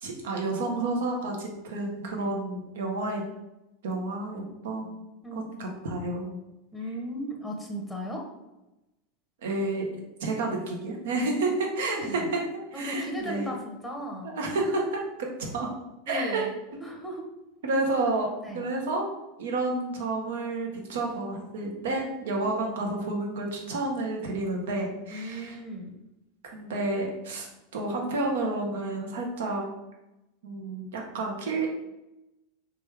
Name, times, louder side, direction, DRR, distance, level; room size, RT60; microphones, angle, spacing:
voice 1, 0.0-3.2 3.8-5.0 5.3-6.4 9.4-9.9 10.2-12.4 12.7-13.6 14.2-15.7 16.1-16.5 17.6-18.3 18.5-19.1 19.4-25.6 26.5-29.6 30.4-31.7, right 2 dB, 65° right, 1 dB, 0.8 m, -30 dB
voice 2, 5.2-5.6 6.7-8.2 11.2-12.3 12.7-14.3 16.1-16.5 16.8-17.2 18.4-18.6 25.1-25.9, equal, ahead, 0 dB, 0.9 m, -36 dB
3.4 x 3.2 x 3.4 m, 0.96 s
figure-of-eight pair, 85°, 0 cm